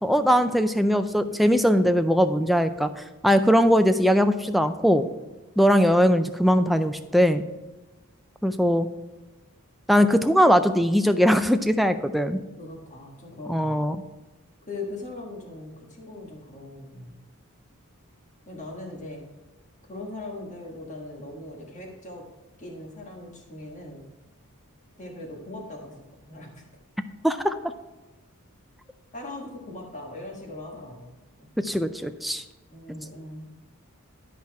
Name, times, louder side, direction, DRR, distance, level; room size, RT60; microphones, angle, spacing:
voice 1, 0.0-2.9 3.2-5.1 5.6-7.4 8.4-8.9 9.9-12.4 13.5-14.0 27.2-27.5 31.6-32.4, equal, ahead, 8 dB, 0.3 m, -20 dB
voice 2, 12.6-13.8 14.7-17.2 18.5-19.2 19.9-22.2 22.6-24.0 25.0-26.6 29.1-31.1 31.4-31.7 32.7-33.5, left 2 dB, 35° left, 0 dB, 1.5 m, -40 dB
11.5 x 4.2 x 4.7 m, 1.1 s
head